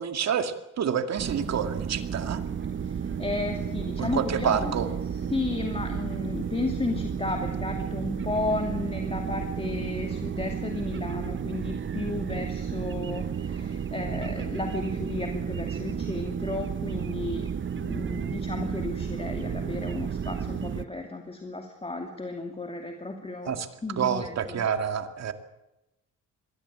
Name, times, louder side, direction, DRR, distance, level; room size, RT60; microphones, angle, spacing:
voice 1, 0.0-2.4 4.0-4.9 23.5-23.7 24.0-25.3, right 8 dB, 60° right, 7 dB, 2.3 m, -28 dB
sound 1, 1.2-20.8, right 7 dB, 40° right, 1.1 m, -32 dB
voice 2, 2.8-4.9 5.3-17.5 17.8-24.6, left 2 dB, 20° left, 3 dB, 2.6 m, -33 dB
22.5 x 16.0 x 8.9 m, 0.94 s
cardioid pair, 90°, 30 cm